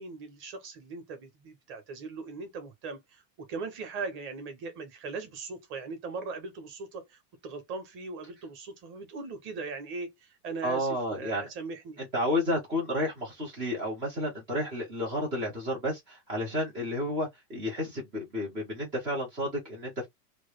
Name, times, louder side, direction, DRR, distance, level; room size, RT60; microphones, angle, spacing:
voice 1, 0.0-12.0, right 4 dB, 25° right, 0.9 m, -39 dB
voice 2, 10.6-11.5 12.0-20.1, left 1 dB, 10° right, 0.3 m, -31 dB
3.0 x 2.3 x 3.1 m
supercardioid pair, 155°, 48 cm